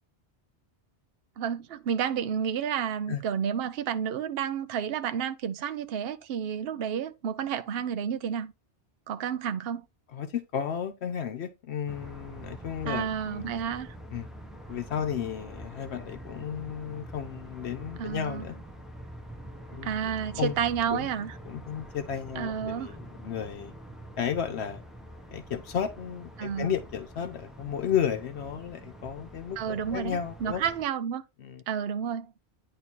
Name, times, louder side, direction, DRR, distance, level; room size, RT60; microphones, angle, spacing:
voice 1, 1.4-8.5 9.1-9.8 12.9-13.9 18.0-18.5 19.8-21.3 22.3-22.9 26.4-26.7 29.6-31.2 31.7-32.3, right 8 dB, 65° right, 0.8 m, -31 dB
voice 2, 10.1-13.6 14.1-14.3 14.7-18.6 19.7-19.9 20.4-20.5 20.9-21.1 21.5-23.7 24.2-24.8 25.3-30.6 31.4-31.6, left 8 dB, 75° left, 1.0 m, -33 dB
sound 1, 11.9-30.8, right 1 dB, ahead, 1.0 m, -45 dB
9.7 x 3.3 x 4.4 m
omnidirectional pair, 1.1 m